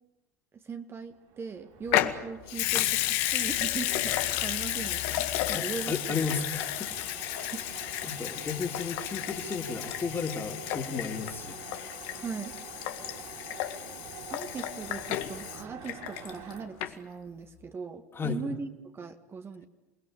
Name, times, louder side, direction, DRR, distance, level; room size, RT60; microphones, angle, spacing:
voice 1, 0.6-6.2 7.4-7.6 12.1-12.5 14.3-19.7, right 5 dB, 30° right, 6 dB, 2.0 m, -39 dB
sound 1, 1.1-16.6, right 5 dB, 65° right, 7.6 m, -47 dB
Water tap faucet / Sink (filling or washing) / Liquid, 1.9-16.5 16.8-16.9, left 14 dB, 65° left, 1.9 m, -32 dB
voice 2, 5.5-6.9 8.0-11.6 18.1-18.4, left 5 dB, 30° left, 3 dB, 3.1 m, -34 dB
28.5 x 20.5 x 8.8 m, 1.1 s
hypercardioid pair, 75°, 8 cm